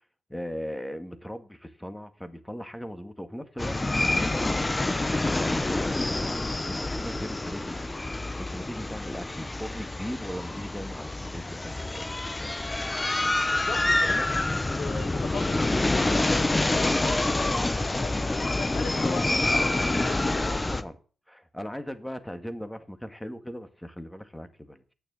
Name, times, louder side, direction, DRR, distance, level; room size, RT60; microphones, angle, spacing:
voice 1, 0.3-4.7 5.4-7.9 8.4-12.5 13.9-14.3 20.5-21.0 21.3-24.8, equal, 10° left, 1.8 m, -38 dB
sound 1, 3.6-20.8, left 2 dB, 25° left, 0.9 m, -27 dB
voice 2, 13.5-14.3 14.8-20.6, left 4 dB, 75° left, 2.1 m, -38 dB
9.2 x 6.8 x 7.6 m
cardioid pair, 60°, 0 cm